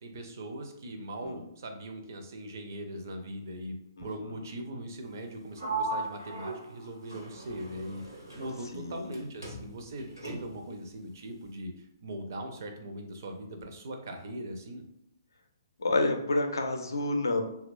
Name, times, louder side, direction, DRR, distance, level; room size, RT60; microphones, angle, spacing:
voice 1, 0.0-14.8, right 1 dB, 50° right, 4 dB, 0.4 m, -40 dB
voice 2, 4.0-4.4 8.7-9.1 15.8-17.4, left 2 dB, 70° left, 4 dB, 0.4 m, -29 dB
Sliding door, 5.6-9.2 9.4-10.7, right 3 dB, 90° right, 0.8 m, -38 dB
2.8 x 2.2 x 2.5 m, 0.77 s
figure-of-eight pair, 125°, 2 cm